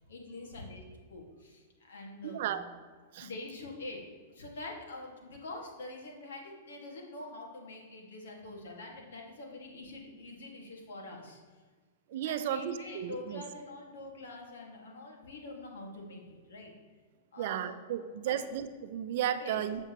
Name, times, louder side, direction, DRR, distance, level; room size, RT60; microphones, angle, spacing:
voice 1, 0.1-0.8 1.1-2.6 3.2-11.6 12.2-16.8 17.3-18.4 19.4-19.6, left 2 dB, 85° left, 0 dB, 1.9 m, -45 dB
voice 2, 2.2-2.6 3.1-3.3 12.1-13.4 17.4-19.9, right 10 dB, 55° right, 10 dB, 0.6 m, -34 dB
7.9 x 7.6 x 3.0 m, 1.5 s
hypercardioid pair, 150°, 0 cm